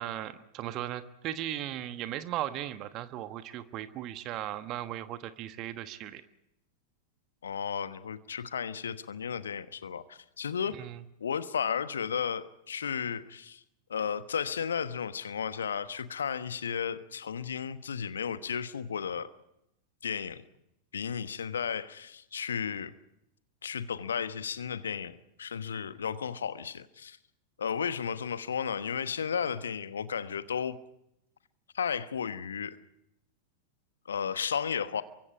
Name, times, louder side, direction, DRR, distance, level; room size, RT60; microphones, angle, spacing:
voice 1, 0.0-6.2 10.7-11.0, right 13 dB, 35° right, 11 dB, 1.3 m, -37 dB
voice 2, 7.4-10.8 11.2-13.6 13.9-19.3 20.0-20.4 20.9-22.9 23.6-27.2 27.6-30.8 31.7-32.8 34.0-35.0, left 7 dB, 70° left, 13 dB, 1.2 m, -34 dB
28.0 x 24.0 x 4.9 m, 0.81 s
figure-of-eight pair, 90°, 0 cm